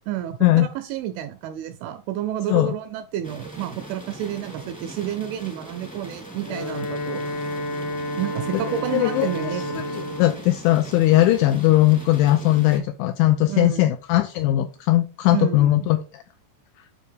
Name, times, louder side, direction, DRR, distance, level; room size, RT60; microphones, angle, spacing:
voice 1, 0.1-7.6 8.1-9.9 13.5-13.9 15.3-15.9, right 11 dB, 85° right, 10 dB, 2.7 m, -30 dB
sound 1, 3.2-12.8, right 2 dB, 10° left, 0.5 m, -40 dB
Wind instrument woodwind instrument, 6.3-10.5, left 1 dB, 65° left, 2.1 m, -30 dB
voice 2, 8.9-16.0, left 15 dB, 85° left, 8 dB, 2.7 m, -19 dB
9.5 x 5.4 x 3.4 m, 0.34 s
omnidirectional pair, 5.9 m